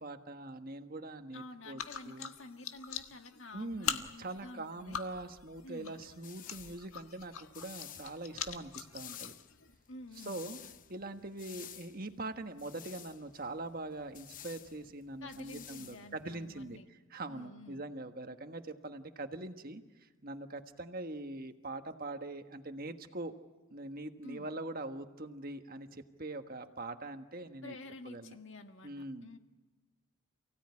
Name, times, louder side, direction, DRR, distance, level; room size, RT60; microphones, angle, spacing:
voice 1, 0.0-2.3 3.5-9.3 10.2-10.6 10.9-16.8 17.1-23.3 23.7-27.8 28.0-28.4 28.8-29.3, right 2 dB, 45° right, 7 dB, 1.5 m, -43 dB
voice 2, 1.3-5.0 5.6-5.9 9.9-10.4 15.2-16.9 17.3-17.8 24.2-24.5 27.6-29.4, left 2 dB, 60° left, 6 dB, 1.9 m, -50 dB
sound 1, 1.8-9.8, left 8 dB, 85° left, 1.6 m, -43 dB
sound 2, 5.8-16.8, left 10 dB, 40° left, 0.8 m, -53 dB
29.0 x 17.5 x 9.7 m, 1.3 s
head